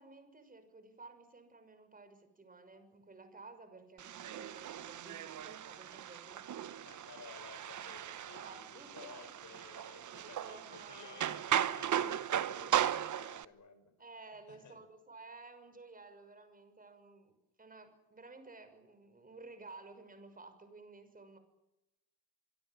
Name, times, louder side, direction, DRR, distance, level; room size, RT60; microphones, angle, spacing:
voice 1, 0.0-6.5 8.4-9.3 9.9-11.3 14.0-17.3 17.6-21.4, right 3 dB, 15° right, 9 dB, 6.2 m, -54 dB
sound 1, 4.0-13.4, right 10 dB, 40° right, 1.2 m, -37 dB
voice 2, 6.8-13.9 14.5-14.8, left 5 dB, 35° left, 10 dB, 6.3 m, -55 dB
25.5 x 24.5 x 7.5 m, 0.91 s
cardioid pair, 120°, 48 cm